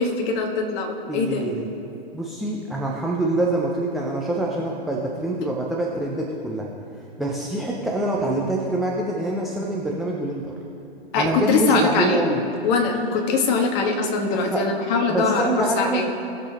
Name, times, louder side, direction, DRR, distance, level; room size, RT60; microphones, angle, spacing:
voice 1, 0.0-1.5 11.1-12.2 12.6-16.1, left 4 dB, 35° left, 2 dB, 1.5 m, -22 dB
voice 2, 1.1-1.7 2.1-6.7 7.2-10.5 11.1-12.4 14.3-14.7 15.1-16.1, right 2 dB, ahead, -4 dB, 0.4 m, -25 dB
19.0 x 6.8 x 2.9 m, 2.7 s
hypercardioid pair, 125°, 31 cm